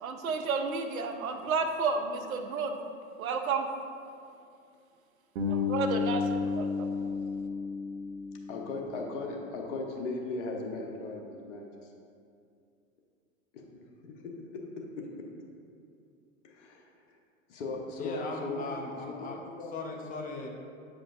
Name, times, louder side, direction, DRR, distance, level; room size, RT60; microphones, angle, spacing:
voice 1, 0.0-2.8 3.2-3.7 5.5-7.1, right 4 dB, 80° right, 6 dB, 0.7 m, -32 dB
Bass guitar, 5.4-9.3, left 5 dB, 65° right, 1.1 m, -32 dB
voice 2, 8.5-11.9 13.5-15.3 16.4-17.2 17.5-18.7 19.1-19.7, left 3 dB, 60° left, 0 dB, 1.2 m, -38 dB
voice 3, 18.0-19.4 19.7-20.5, left 3 dB, 20° left, 0 dB, 0.8 m, -38 dB
8.8 x 5.0 x 2.5 m, 2.4 s
hypercardioid pair, 100°, 41 cm